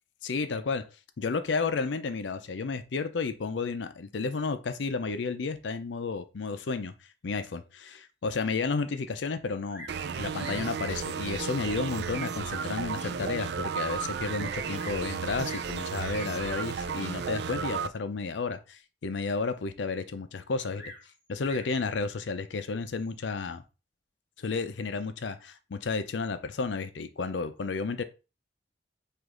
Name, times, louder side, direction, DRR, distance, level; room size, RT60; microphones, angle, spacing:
voice 1, 0.2-0.9 1.2-6.9 7.2-9.9 10.2-20.8 21.3-23.6 24.4-28.0, left 4 dB, 80° left, 0.5 m, -32 dB
Bird vocalization bird call bird song, 9.7-10.1 10.3-10.7 11.6-11.7 12.3-12.4 12.9-13.0 13.2-13.3 14.4-15.1 15.4-15.8 16.8-17.1 20.7-21.8 22.8-23.3, equal, 10° right, 1.4 m, -47 dB
sound 1, 9.9-17.9, right 6 dB, 65° right, 0.4 m, -33 dB
4.9 x 2.5 x 3.7 m
head